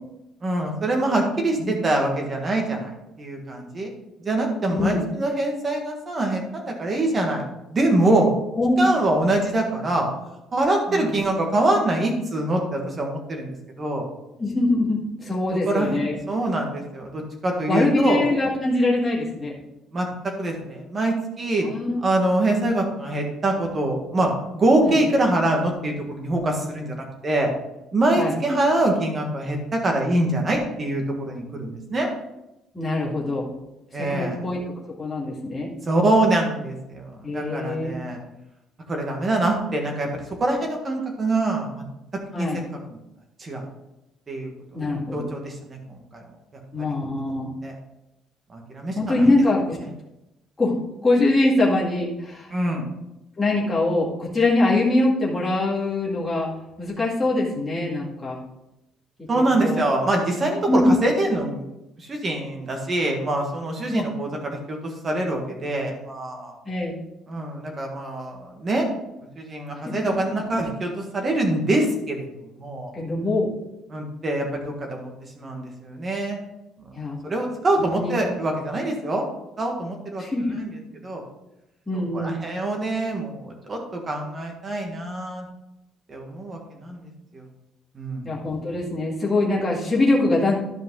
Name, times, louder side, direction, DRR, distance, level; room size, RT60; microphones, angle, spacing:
voice 1, 0.4-3.9 4.2-8.3 8.8-10.1 10.5-14.1 15.7-16.0 16.3-18.2 19.9-21.7 22.0-27.5 27.9-32.1 33.9-34.4 35.9-38.2 38.9-41.8 42.4-43.0 43.4-43.6 44.3-46.2 47.6-47.7 48.5-49.3 52.5-52.9 59.3-61.6 62.0-66.5 67.3-68.9 69.4-72.9 73.9-76.4 77.2-79.2 79.6-80.2 80.5-80.7 81.0-81.2 81.9-85.5 86.1-87.0 87.3-87.4 87.9-88.3, right 2 dB, 20° right, 2 dB, 1.5 m, -24 dB
voice 2, 4.7-5.0 8.6-8.9 10.9-11.1 14.4-16.2 17.7-19.6 21.7-22.0 22.6-22.7 24.9-25.0 28.1-28.4 32.7-33.5 33.9-34.6 35.0-35.7 37.2-37.9 42.3-42.6 44.7-45.3 46.7-47.5 49.0-49.8 50.6-50.8 51.0-52.5 53.4-56.5 56.8-58.4 59.6-59.8 60.7-61.0 63.9-64.0 66.7-67.0 69.7-70.3 72.9-73.5 76.9-77.2 78.0-78.1 80.2-80.6 81.9-82.4 88.2-90.6, left 2 dB, 10° left, -7 dB, 2.1 m, -23 dB
12.0 x 5.2 x 3.9 m, 0.90 s
cardioid pair, 180°, 0 cm